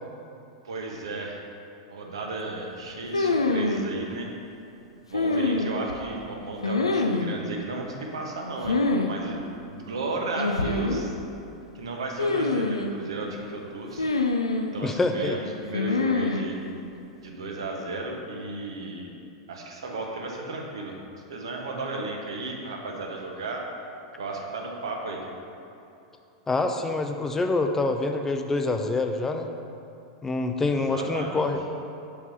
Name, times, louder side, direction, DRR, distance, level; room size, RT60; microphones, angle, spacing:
voice 1, 0.6-1.5 1.9-4.3 5.1-11.1 11.7-14.1 14.6-16.6 17.2-19.1 19.5-21.0 21.3-23.6 24.2-25.2 30.7-31.5, right 2 dB, 70° right, 0 dB, 1.1 m, -34 dB
sound 1, 3.1-3.8 5.1-6.0 6.6-7.3 8.6-9.1 9.4-9.5 10.4-11.1 12.2-12.9 14.0-14.7 15.7-16.5, left 3 dB, 80° left, 0.4 m, -25 dB
voice 2, 14.8-15.4 26.5-29.5 30.2-31.6, left 3 dB, 15° left, 5 dB, 0.4 m, -26 dB
5.4 x 4.6 x 5.7 m, 2.8 s
figure-of-eight pair, 95°, 3 cm